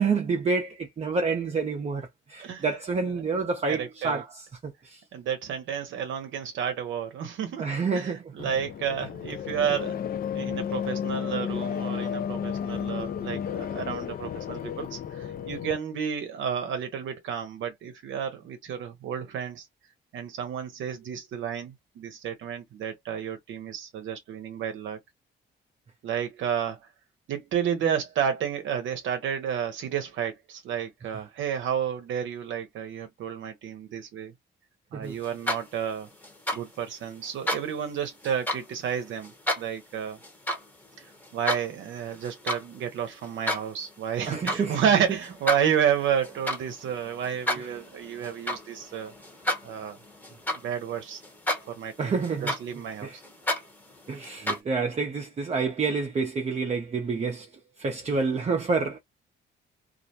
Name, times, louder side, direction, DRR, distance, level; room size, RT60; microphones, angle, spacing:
voice 1, 0.0-5.0 7.6-8.5 34.9-35.2 44.3-44.8 47.6-47.7 52.0-52.5 53.0-53.2 54.1-57.5 57.8-59.0, right 4 dB, 35° right, 0.6 m, -28 dB
voice 2, 3.7-4.2 5.1-7.7 7.9-10.0 10.3-19.7 20.1-25.0 26.0-26.8 27.3-34.3 34.9-36.1 36.5-40.2 41.3-49.1 49.6-50.0 50.6-51.2 51.7-53.2, right 8 dB, 75° right, 0.7 m, -31 dB
sound 1, 8.4-15.8, left 8 dB, 50° left, 0.4 m, -32 dB
sound 2, 35.2-35.9 36.2-36.6 37.2-37.6 38.2-38.6 39.2-39.6 40.2-40.6 41.0-41.6 42.1-42.7 43.0-43.6 44.2-44.6 45.2-51.0 51.2-51.9 52.2-54.6, equal, 10° left, 0.9 m, -31 dB
2.4 x 2.1 x 2.7 m
cardioid pair, 90°, 20 cm